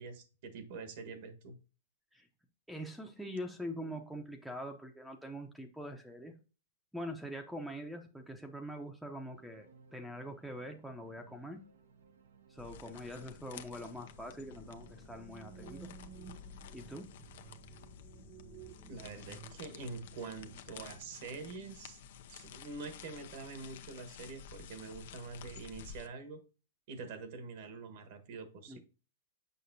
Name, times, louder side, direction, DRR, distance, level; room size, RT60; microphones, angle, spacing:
voice 1, 0.0-1.5 18.9-22.0 22.3-26.4 26.9-28.8, right 4 dB, 60° right, 8 dB, 1.4 m, -45 dB
voice 2, 2.7-6.3 6.9-11.6 12.5-15.9 16.7-17.1 28.7-28.8, equal, ahead, 4 dB, 0.7 m, -44 dB
sound 1, 9.3-17.7, right 5 dB, 85° right, 1.0 m, -62 dB
sound 2, 12.6-26.1, left 8 dB, 65° left, 0.7 m, -52 dB
sound 3, 14.6-21.1, right 10 dB, 25° right, 0.3 m, -55 dB
6.8 x 5.5 x 2.7 m, 0.33 s
hypercardioid pair, 135°, 0 cm